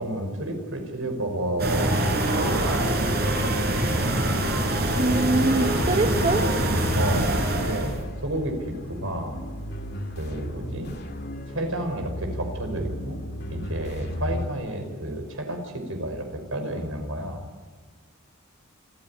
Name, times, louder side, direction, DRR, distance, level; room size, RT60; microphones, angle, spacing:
voice 1, 0.0-1.9 2.3-4.1 5.4-5.9 7.0-8.6 9.0-9.4 10.2-10.9 11.5-13.2 13.5-17.4, right 1 dB, 70° right, 5 dB, 5.6 m, -31 dB
sound 1, 1.6-8.0, right 1 dB, 50° right, 5.3 m, -24 dB
voice 2, 5.0-6.5, right 2 dB, 30° right, 4 dB, 1.2 m, -23 dB
sound 2, 5.4-14.5, left 1 dB, 50° left, 2.3 m, -34 dB
28.5 x 14.5 x 10.0 m, 1.4 s
head